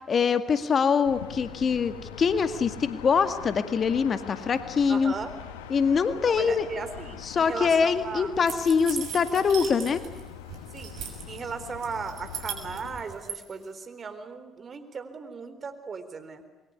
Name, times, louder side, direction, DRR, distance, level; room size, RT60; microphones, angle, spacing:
voice 1, 0.1-5.1 5.7-6.7 7.2-10.0, left 6 dB, 50° left, 10 dB, 2.0 m, -24 dB
sound 1, 1.1-13.0, left 8 dB, 90° left, 1.5 m, -43 dB
voice 2, 4.9-5.3 6.2-8.3 10.7-10.9 11.3-16.4, right 5 dB, 45° right, 10 dB, 3.9 m, -37 dB
sound 2, 8.5-10.2 10.5-11.4 11.8-13.4, right 8 dB, 70° right, 6.3 m, -37 dB
27.5 x 22.0 x 9.7 m, 1.1 s
hypercardioid pair, 50°, 0 cm